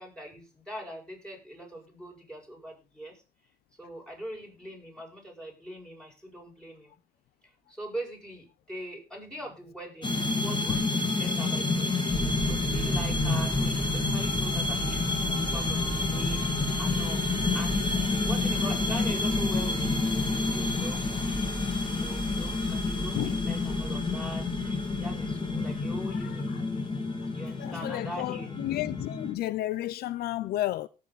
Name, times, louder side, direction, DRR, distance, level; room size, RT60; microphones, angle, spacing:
voice 1, 0.0-3.2 3.8-7.0 7.7-11.9 12.5-17.2 17.5-17.8 18.2-21.1 21.9-26.5 27.3-28.5, equal, 5° left, 7.3 m, -42 dB
sound 1, 10.0-29.3, left 3 dB, 30° left, 2.9 m, -29 dB
sound 2, 12.1-26.3, right 1 dB, 15° right, 1.7 m, -37 dB
voice 2, 26.1-26.6 27.6-30.9, left 15 dB, 70° left, 0.5 m, -32 dB
17.5 x 7.7 x 4.1 m
cardioid pair, 110°, 17 cm